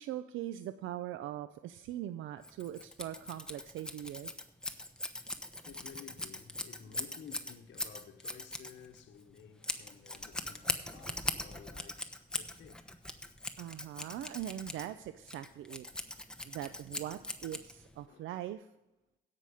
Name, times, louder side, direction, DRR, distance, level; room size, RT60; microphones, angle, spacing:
voice 1, 0.0-4.4 13.6-15.9 16.4-18.7, right 12 dB, 80° right, 0.5 m, -41 dB
Scissors, 2.4-18.0, left 1 dB, 5° left, 1.0 m, -41 dB
voice 2, 5.2-13.0 18.1-18.4, left 8 dB, 65° left, 1.0 m, -54 dB
16.5 x 5.9 x 4.9 m
cardioid pair, 90°, 20 cm